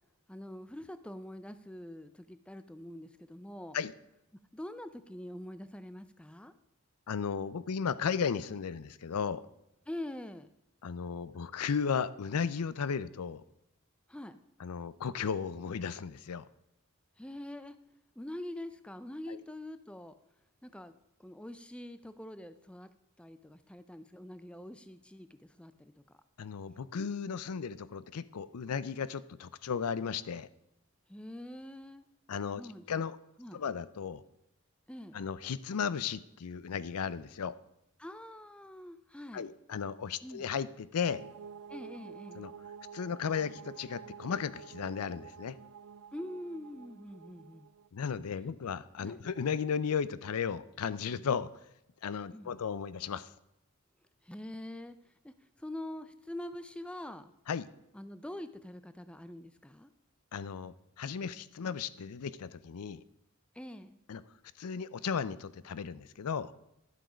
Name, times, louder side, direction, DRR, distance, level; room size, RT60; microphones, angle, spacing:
voice 1, 0.3-3.8 4.5-6.5 9.9-10.5 14.1-14.3 17.2-17.8 18.2-20.1 20.6-20.9 21.2-22.9 23.2-25.9 31.1-32.0 32.6-33.0 33.4-33.6 34.9-35.1 38.0-39.5 40.2-40.5 41.7-42.5 46.1-47.7 49.0-49.2 52.3-52.6 54.2-55.0 55.2-55.3 55.6-57.3 57.9-59.9 63.6-64.0, left 1 dB, 5° left, 12 dB, 0.4 m, -44 dB
voice 2, 7.1-9.4 10.8-13.4 14.6-16.5 19.3-19.4 26.4-30.5 32.3-32.6 32.9-33.2 33.5-34.2 35.1-37.5 39.3-41.2 42.3-42.5 42.9-45.6 47.9-51.5 52.0-53.3 57.5-57.7 60.3-63.0 64.1-64.2 64.6-66.5, left 6 dB, 85° left, 17 dB, 0.5 m, -35 dB
sound 1, 41.0-47.9, right 6 dB, 70° right, 0.3 m, -49 dB
11.5 x 7.7 x 5.0 m, 0.86 s
head